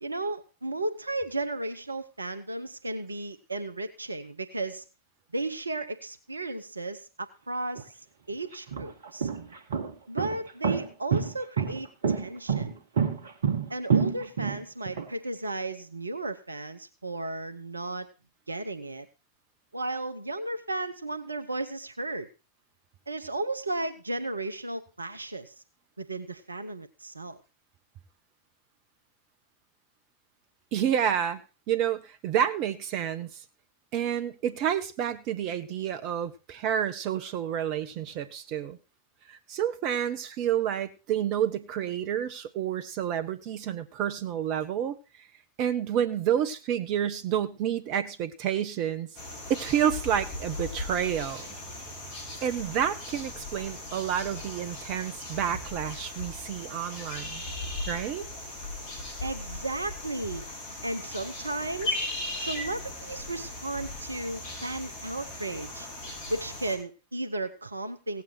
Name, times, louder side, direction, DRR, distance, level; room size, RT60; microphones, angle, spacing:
voice 1, 0.0-4.8 5.3-7.9 8.3-9.3 10.1-12.7 13.7-18.1 18.5-19.1 19.7-22.3 23.1-25.5 26.0-27.4 59.2-60.4 60.8-62.0 62.4-65.9 66.3-68.2, right 2 dB, 80° right, 10 dB, 0.8 m, -34 dB
sound 1, 7.8-7.9 8.5-15.1, right 6 dB, 65° right, 1.5 m, -27 dB
voice 2, 30.7-31.4 31.7-33.4 33.9-38.8 39.3-45.0 45.6-49.1 49.5-51.5 52.4-57.4 57.9-58.3, right 9 dB, 40° right, 11 dB, 1.0 m, -29 dB
sound 2, 49.1-66.8, left 2 dB, 50° left, 4.8 m, -38 dB
17.0 x 8.3 x 4.5 m, 0.31 s
figure-of-eight pair, 90°, 0 cm